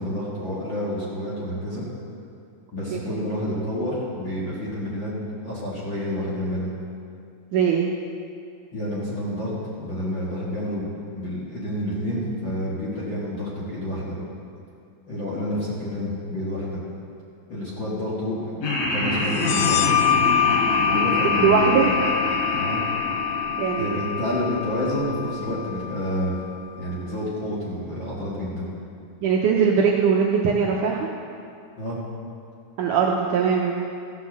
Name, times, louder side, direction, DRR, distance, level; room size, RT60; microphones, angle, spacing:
voice 1, 0.0-1.8 2.7-5.1 5.4-6.7 8.7-10.9 11.1-14.2 15.1-16.8 17.5-18.6 18.9-20.0 20.8-22.0 22.6-22.8 23.8-26.4 26.7-28.7 31.8-32.0, equal, 40° left, -7 dB, 1.8 m, -29 dB
voice 2, 7.5-7.9 21.2-21.9 23.6-23.9 29.2-31.1 32.8-33.8, right 6 dB, 75° right, -1 dB, 1.9 m, -21 dB
Laughter, 18.6-24.8, left 1 dB, 70° left, 4.4 m, -27 dB
sound 1, 19.3-26.6, left 9 dB, 85° left, 2.5 m, -25 dB
15.0 x 5.9 x 7.3 m, 2.5 s
omnidirectional pair, 4.3 m